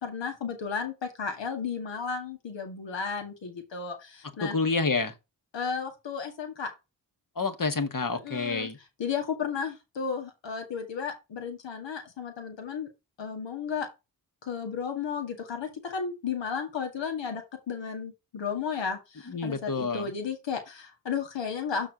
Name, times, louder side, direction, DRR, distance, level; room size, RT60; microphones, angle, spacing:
voice 1, 0.0-4.6 5.5-6.7 8.2-8.7 9.0-12.9 13.2-13.9 14.4-21.9, left 6 dB, 80° left, 2.0 m, -33 dB
voice 2, 4.4-5.1 7.3-8.8 19.3-20.1, left 4 dB, 45° left, 1.7 m, -28 dB
6.3 x 4.5 x 6.0 m
cardioid pair, 40°, 43 cm